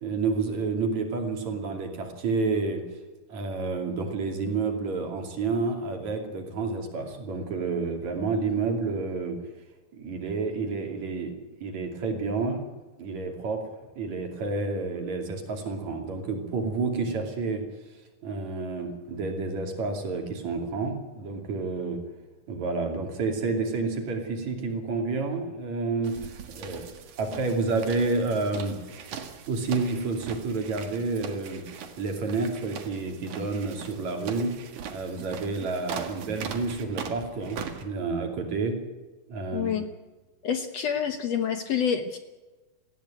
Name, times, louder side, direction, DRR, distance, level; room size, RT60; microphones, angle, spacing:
voice 1, 0.0-2.8 3.3-9.4 9.9-11.3 11.6-12.6 13.0-13.6 14.0-17.6 18.2-22.0 22.5-26.9 27.2-28.8 29.5-34.5 34.9-38.8 39.3-39.7, right 3 dB, 60° right, 4 dB, 3.9 m, -29 dB
sound 1, 26.0-37.8, right 7 dB, 80° right, 3.5 m, -40 dB
voice 2, 39.5-39.9 40.4-42.2, left 8 dB, 65° left, 8 dB, 1.9 m, -27 dB
19.0 x 15.5 x 9.1 m, 1.2 s
omnidirectional pair, 3.8 m